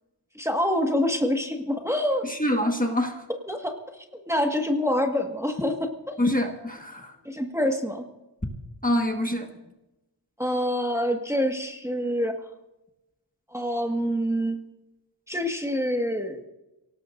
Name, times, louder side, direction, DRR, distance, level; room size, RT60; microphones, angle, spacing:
voice 1, 0.3-2.2 3.5-6.2 7.2-8.1 10.4-12.4 13.5-14.6 15.3-16.4, equal, 5° right, 3 dB, 1.6 m, -26 dB
voice 2, 2.3-3.2 6.2-7.1 8.8-9.5, left 1 dB, 20° left, 3 dB, 1.5 m, -25 dB
25.5 x 18.0 x 2.6 m, 0.98 s
wide cardioid pair, 75°, 44 cm